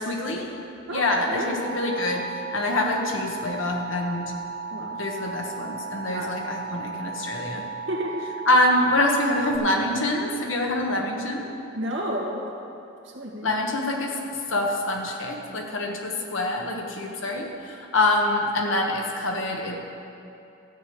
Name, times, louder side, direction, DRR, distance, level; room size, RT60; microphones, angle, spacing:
voice 1, 0.1-0.5 0.9-2.3 2.5-4.4 5.0-7.6 8.5-11.4 13.4-14.1 14.5-19.8, left 1 dB, 75° left, 1 dB, 1.4 m, -25 dB
voice 2, 0.9-1.5 4.7-4.9 6.1-6.3 6.6-7.2 7.9-8.5 11.7-12.4 13.1-13.5, right 1 dB, 65° right, -2 dB, 1.9 m, -32 dB
Alarm, 1.4-9.6, right 5 dB, 45° right, 0.8 m, -35 dB
13.0 x 5.1 x 8.6 m, 2.7 s
head